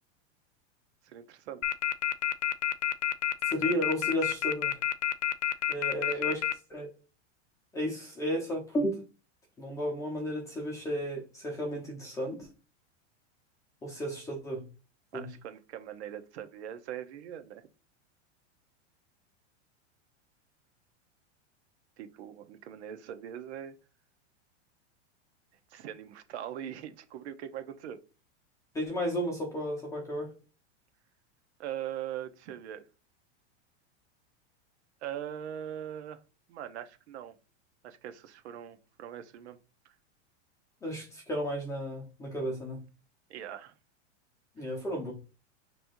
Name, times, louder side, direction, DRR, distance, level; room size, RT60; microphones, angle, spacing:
voice 1, 1.0-1.7 6.0-6.4 15.1-17.6 22.0-23.8 25.7-28.0 31.6-32.8 35.0-36.2 36.5-37.3 37.8-39.6 39.8-39.9 43.3-43.7 44.6-44.7, right 10 dB, 65° right, 1.0 m, -41 dB
sound 1, 1.6-6.5, left 11 dB, 90° left, 0.7 m, -28 dB
voice 2, 3.5-4.8 5.7-6.9 7.7-9.1 9.6-12.5 13.8-14.6 15.1-15.3 28.7-30.3 40.8-42.8 44.6-45.1, equal, 10° left, 1.1 m, -33 dB
5.8 x 3.3 x 2.7 m
supercardioid pair, 165°, 35 cm